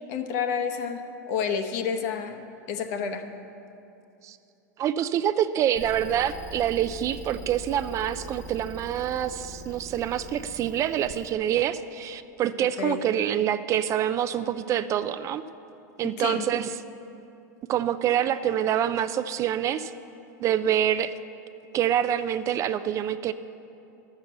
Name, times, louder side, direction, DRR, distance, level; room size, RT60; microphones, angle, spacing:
voice 1, 0.1-2.4 2.7-3.3 12.8-13.0 16.0-16.5, left 6 dB, 60° left, 7 dB, 1.0 m, -29 dB
voice 2, 4.8-15.4 16.0-16.7 17.7-19.9 20.4-21.1 21.7-23.3, right 10 dB, 30° right, 12 dB, 0.4 m, -26 dB
sound 1, 5.7-11.3, right 2 dB, 5° right, 1.0 m, -42 dB
11.5 x 6.7 x 7.9 m, 2.8 s
supercardioid pair, 125°, 10 cm